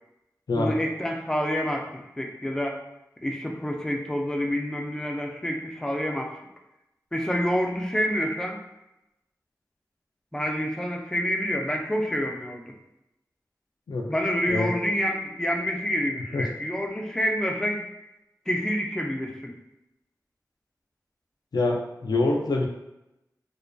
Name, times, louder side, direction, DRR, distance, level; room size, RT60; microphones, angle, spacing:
voice 1, 0.5-2.8 3.2-6.3 7.1-8.6 10.3-12.7 14.1-17.8 18.5-19.5, equal, 10° left, 1 dB, 0.3 m, -28 dB
voice 2, 21.5-22.7, left 2 dB, 85° left, 1 dB, 0.3 m, -25 dB
2.5 x 2.2 x 2.2 m, 0.91 s
wide cardioid pair, 50°, 7 cm